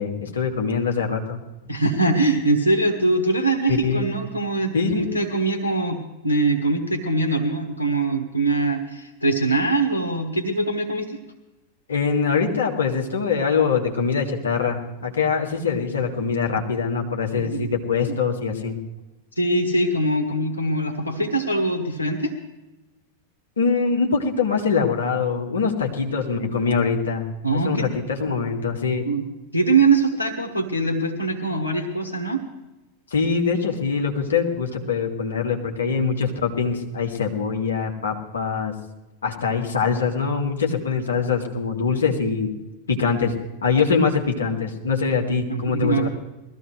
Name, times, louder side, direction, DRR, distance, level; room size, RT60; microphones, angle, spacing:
voice 1, 0.0-1.4 3.7-4.0 4.7-5.1 11.9-18.8 23.6-29.1 33.1-38.7 39.2-42.6 42.9-43.3 43.6-46.1, left 5 dB, 70° left, 0 dB, 1.9 m, -23 dB
voice 2, 1.7-11.2 17.4-17.6 18.1-18.2 19.3-22.3 27.4-27.9 29.0-29.3 29.5-32.4 45.5-46.1, right 2 dB, 85° right, 5 dB, 1.2 m, -22 dB
20.5 x 14.5 x 3.3 m, 1.0 s
figure-of-eight pair, 90°, 0 cm